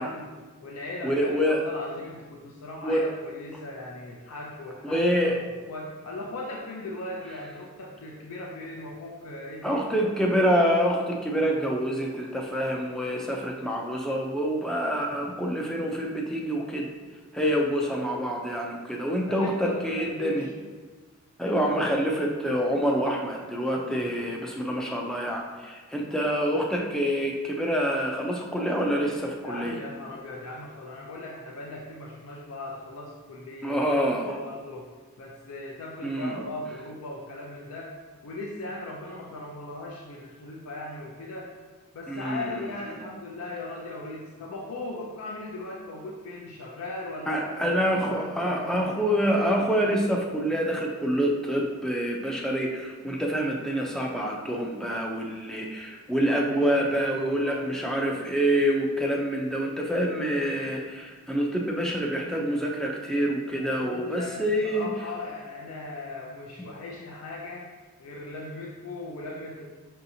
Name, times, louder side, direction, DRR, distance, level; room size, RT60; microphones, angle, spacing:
voice 1, 0.0-5.4 5.7-9.9 19.3-20.5 29.4-34.9 35.2-38.0 38.2-41.5 41.9-48.9 56.5-57.6 63.5-67.7 68.0-69.7, left 2 dB, 70° left, -2 dB, 0.4 m, -38 dB
voice 2, 1.0-1.6 2.8-3.1 4.8-5.4 9.6-16.9 17.3-20.4 21.4-29.8 33.6-34.4 36.0-36.4 42.1-42.6 47.3-64.9, equal, ahead, -1 dB, 0.3 m, -26 dB
5.6 x 2.7 x 2.6 m, 1.3 s
head